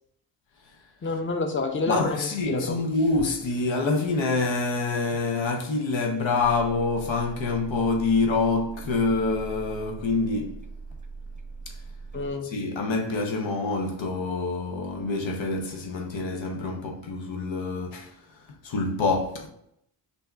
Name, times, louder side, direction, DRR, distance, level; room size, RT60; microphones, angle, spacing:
voice 1, 1.0-2.8 12.1-12.5, left 3 dB, 25° left, 0.7 m, -28 dB
voice 2, 1.9-10.6 11.7-11.8 12.4-19.5, left 3 dB, 85° left, 0.8 m, -26 dB
sound 1, 6.4-12.3, right 4 dB, 15° right, 0.8 m, -41 dB
3.4 x 2.7 x 4.4 m
cardioid pair, 45°, 44 cm